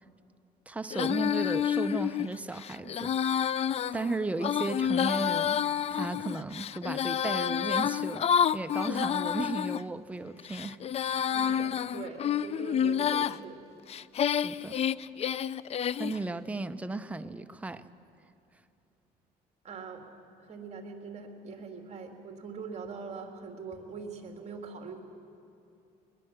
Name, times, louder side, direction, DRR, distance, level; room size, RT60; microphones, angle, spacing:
voice 1, 0.7-3.5 3.9-10.8 14.2-14.9 16.0-17.9, right 2 dB, 10° right, 9 dB, 0.7 m, -35 dB
Female singing, 0.9-9.8 10.4-13.4 13.9-16.2, left 9 dB, 40° left, 0.4 m, -29 dB
voice 2, 11.3-13.6 19.6-20.0 20.4-25.0, right 5 dB, 40° right, 2 dB, 3.1 m, -42 dB
21.5 x 21.0 x 7.6 m, 2.7 s
cardioid pair, 110°, 17 cm